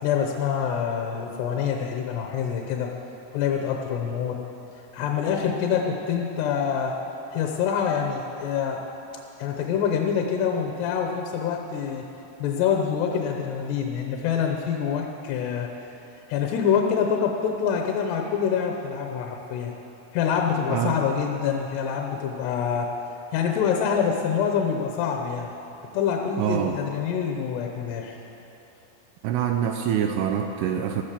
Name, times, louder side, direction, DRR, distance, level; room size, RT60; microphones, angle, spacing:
voice 1, 0.0-2.9 3.3-4.4 4.9-7.0 7.3-8.9 9.4-12.0 12.4-15.7 16.3-19.7 20.1-22.9 23.3-25.5 25.9-28.2, left 7 dB, 75° left, 2 dB, 2.9 m, -26 dB
voice 2, 26.4-26.8 29.2-31.0, right 9 dB, 80° right, 5 dB, 2.5 m, -25 dB
14.0 x 13.0 x 6.8 m, 3.0 s
omnidirectional pair, 5.1 m